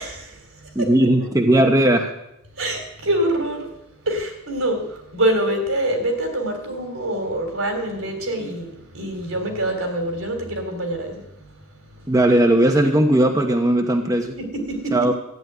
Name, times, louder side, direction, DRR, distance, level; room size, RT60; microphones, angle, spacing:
voice 1, 0.0-0.9 2.5-3.7 4.0-12.1 14.4-15.1, right 1 dB, 85° right, 3.6 m, -26 dB
voice 2, 0.7-2.1 12.1-14.3 14.9-15.1, right 1 dB, 15° right, 1.0 m, -17 dB
13.5 x 7.9 x 9.4 m
head